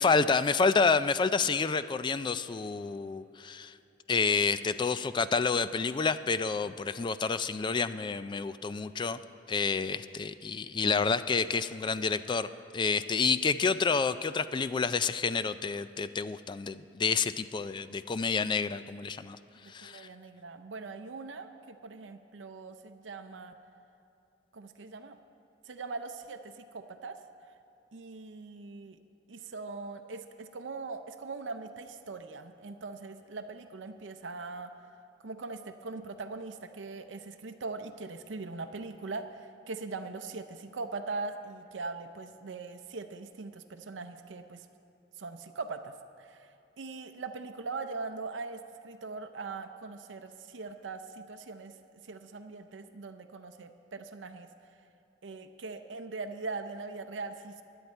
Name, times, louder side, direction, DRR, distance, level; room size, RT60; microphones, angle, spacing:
voice 1, 0.0-3.7 4.1-9.2 9.5-12.5 12.7-19.4 19.7-20.1, left 5 dB, 25° left, 13 dB, 0.3 m, -29 dB
voice 2, 19.6-23.6 24.5-25.2 25.7-27.2 27.9-29.0 29.3-34.7 35.2-44.7 45.2-46.5 46.8-51.7 52.1-54.5 55.2-57.6, right 3 dB, 85° right, 6 dB, 0.6 m, -41 dB
16.5 x 11.0 x 4.4 m, 2.8 s
head